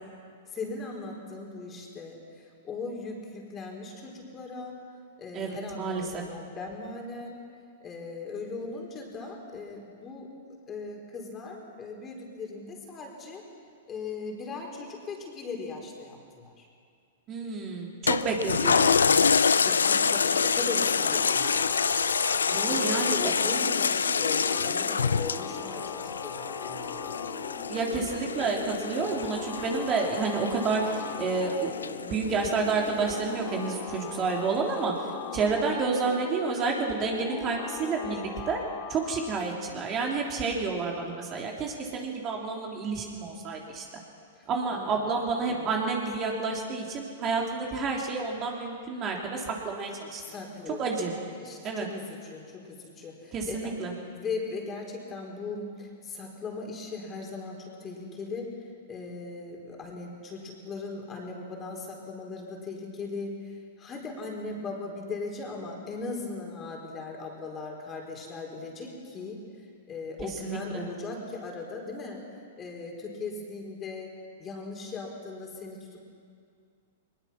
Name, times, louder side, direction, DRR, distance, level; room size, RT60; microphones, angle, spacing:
voice 1, 0.5-4.8 5.2-7.4 7.8-10.3 10.7-13.4 13.9-16.7 19.5-21.6 22.6-27.1 44.3-45.2 45.5-45.7 50.2-50.9 51.3-53.7 54.1-58.5 58.9-69.4 69.9-72.2 72.6-74.1 74.4-76.0, left 3 dB, 25° left, 0 dB, 4.5 m, -38 dB
voice 2, 5.3-6.2 17.3-19.3 22.5-23.2 27.7-31.7 32.0-34.9 35.3-38.6 38.9-43.8 44.5-50.2 50.8-51.1 51.6-51.9 53.3-53.9 70.4-70.9, right 4 dB, 30° right, 0 dB, 3.2 m, -30 dB
Toilet flush, 18.1-32.9 33.4-33.5, left 6 dB, 85° left, 0.5 m, -27 dB
sound 1, 19.5-39.4, left 6 dB, 40° left, 2.6 m, -40 dB
21.5 x 20.5 x 6.0 m, 2.3 s
hypercardioid pair, 110°, 0 cm